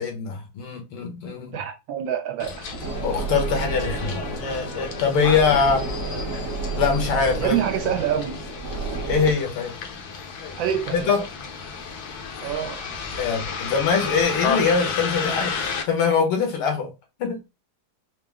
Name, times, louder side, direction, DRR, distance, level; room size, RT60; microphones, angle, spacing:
voice 1, 0.0-1.5 3.0-5.8 6.8-7.6 9.1-9.7 10.9-11.2 13.2-16.9 17.2-17.4, left 5 dB, 80° left, 2.1 m, -23 dB
voice 2, 1.5-2.8 7.4-8.4 10.6-11.1 12.4-12.8, right 10 dB, 75° right, 1.2 m, -26 dB
Bus, 2.4-15.8, left 5 dB, 60° left, 1.1 m, -32 dB
sound 1, 2.8-9.3, right 3 dB, 50° right, 1.0 m, -31 dB
4.8 x 2.1 x 3.5 m
omnidirectional pair, 2.4 m